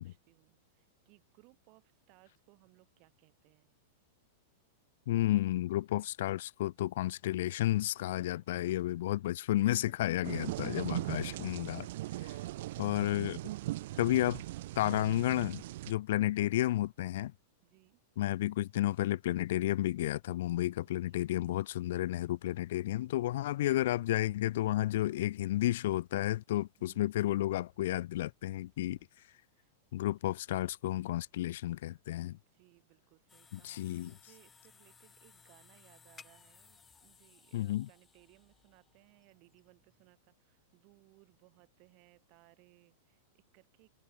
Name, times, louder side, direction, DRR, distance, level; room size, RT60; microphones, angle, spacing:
voice 1, 0.0-3.7 7.4-7.6 8.7-8.8 9.9-10.0 13.8-15.0 17.6-18.0 20.8-21.6 23.4-23.8 26.8-27.2 28.8-29.1 29.5-29.7 32.3-43.9, right 32 dB, 35° right, 5.2 m, -65 dB
voice 2, 5.1-11.9 12.8-13.4 14.0-14.4 14.8-17.3 18.2-29.0 29.9-32.4 33.5-34.1 37.5-37.9, left 14 dB, 55° left, 0.4 m, -32 dB
sound 1, 10.2-15.9, right 16 dB, 50° right, 0.5 m, -39 dB
sound 2, 33.3-40.1, left 6 dB, 10° left, 1.0 m, -61 dB
supercardioid pair, 175°, 0 cm